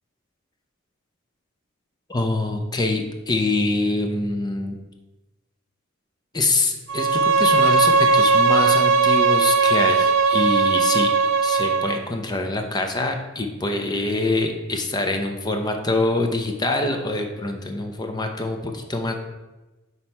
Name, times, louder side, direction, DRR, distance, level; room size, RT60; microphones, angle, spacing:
voice 1, 2.1-4.8 6.3-11.1 11.4-19.1, left 2 dB, 20° left, 4 dB, 0.6 m, -25 dB
Bowed string instrument, 6.9-12.0, right 4 dB, 65° right, 0.4 m, -18 dB
6.1 x 4.1 x 4.5 m, 1.1 s
head